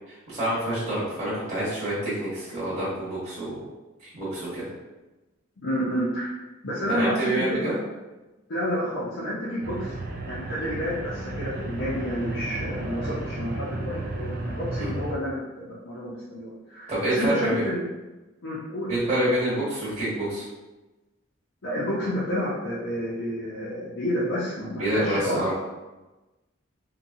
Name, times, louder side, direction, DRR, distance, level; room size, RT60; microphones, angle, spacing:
voice 1, 0.1-3.6 4.0-4.7 6.9-7.7 14.8-14.9 16.9-17.6 18.9-20.4 24.8-25.5, right 1 dB, 35° right, -9 dB, 1.0 m, -27 dB
voice 2, 5.6-6.3 6.6-7.6 8.5-10.0 10.2-17.8 18.4-19.0 21.6-25.4, equal, 75° left, -9 dB, 0.6 m, -29 dB
sound 1, 9.6-15.2, right 2 dB, 50° right, 0.4 m, -33 dB
2.7 x 2.2 x 2.6 m, 1.1 s
head